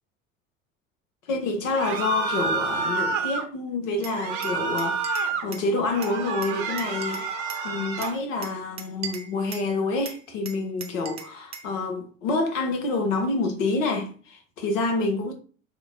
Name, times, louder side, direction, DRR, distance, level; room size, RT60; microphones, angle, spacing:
voice 1, 1.3-15.3, left 3 dB, 65° left, 1.0 m, -28 dB
sound 1, 1.7-3.4 4.1-5.5 5.9-8.2, right 4 dB, 50° right, 0.7 m, -29 dB
Glass, 4.0-5.7 6.0-7.7 8.0-9.7 10.1-11.7, right 6 dB, 15° right, 0.3 m, -40 dB
2.8 x 2.2 x 3.7 m
figure-of-eight pair, 65°, 41 cm